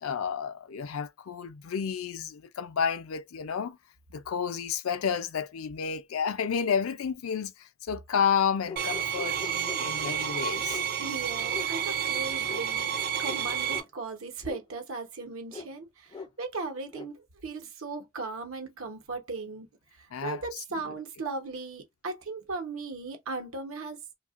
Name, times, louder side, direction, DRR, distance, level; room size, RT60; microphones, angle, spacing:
voice 1, 0.0-3.8 4.1-10.8 20.1-20.9, left 7 dB, 85° left, 0.4 m, -31 dB
sound 1, 8.6-10.2 10.7-10.9 11.5-11.7 12.5-12.6 13.2-13.4 13.7-13.9 14.4-14.6 15.5-15.7 16.1-16.3 16.9-17.1, left 4 dB, 20° left, 0.3 m, -41 dB
sound 2, 8.8-13.8, right 8 dB, 45° right, 0.5 m, -30 dB
voice 2, 11.0-19.7 20.2-24.0, right 3 dB, 80° right, 0.9 m, -37 dB
2.8 x 2.3 x 2.4 m
head